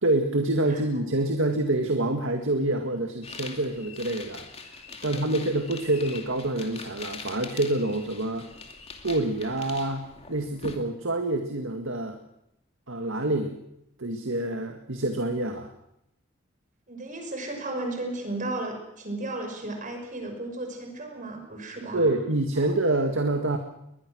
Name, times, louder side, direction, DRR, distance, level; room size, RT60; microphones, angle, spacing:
voice 1, 0.0-4.5 5.0-8.5 9.0-12.2 12.9-13.6 14.0-15.7 21.9-23.6, right 2 dB, 90° right, 5 dB, 2.0 m, -27 dB
sound 1, 3.2-10.8, left 4 dB, 30° left, 2.6 m, -42 dB
voice 2, 5.0-5.3 16.9-22.1 22.6-22.7, right 2 dB, 40° right, 4 dB, 5.8 m, -34 dB
22.0 x 21.0 x 6.4 m, 0.82 s
head